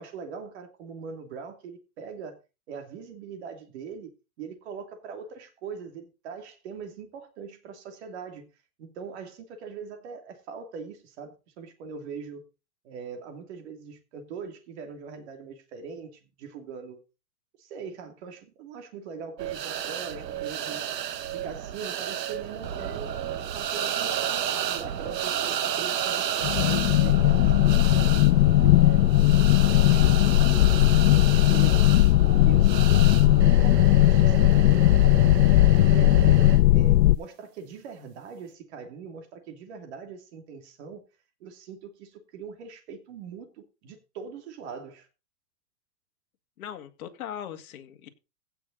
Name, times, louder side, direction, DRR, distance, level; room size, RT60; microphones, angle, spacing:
voice 1, 0.0-2.4 2.7-8.5 8.8-12.5 12.8-17.0 17.6-20.9 21.3-28.2 28.6-31.8 32.2-34.8 35.2-41.0 41.4-45.1, right 6 dB, 45° right, 2.8 m, -41 dB
sound 1, 19.4-36.6, right 9 dB, 85° right, 1.5 m, -32 dB
sound 2, 26.4-37.2, left 15 dB, 75° left, 0.6 m, -18 dB
voice 2, 46.6-48.1, left 9 dB, 60° left, 2.2 m, -39 dB
16.5 x 6.4 x 4.1 m
hypercardioid pair, 160°, 48 cm